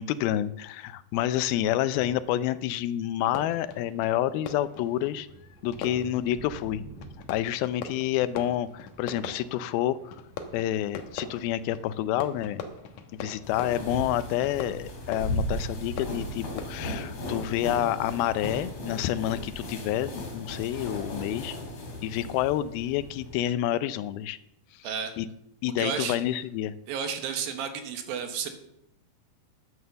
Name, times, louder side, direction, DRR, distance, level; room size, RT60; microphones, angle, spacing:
voice 1, 0.0-5.3 5.6-6.8 7.3-10.2 10.5-12.6 13.2-21.6 22.0-24.4 24.8-24.9 25.2-25.3 25.6-26.7, left 12 dB, 80° left, 15 dB, 2.4 m, -28 dB
sound 1, 1.9-2.4 3.0-3.7 4.1-12.5 12.9-18.1 18.4-21.7, right 2 dB, 5° right, 1.2 m, -52 dB
Fireworks, 3.2-17.4, left 5 dB, 65° left, 1.9 m, -43 dB
sound 2, 13.4-23.4, left 1 dB, 45° left, 3.6 m, -36 dB
voice 2, 24.8-25.1 25.8-26.2 26.9-28.5, right 7 dB, 70° right, 6 dB, 2.9 m, -32 dB
10.5 x 9.5 x 6.9 m, 0.79 s
omnidirectional pair, 4.5 m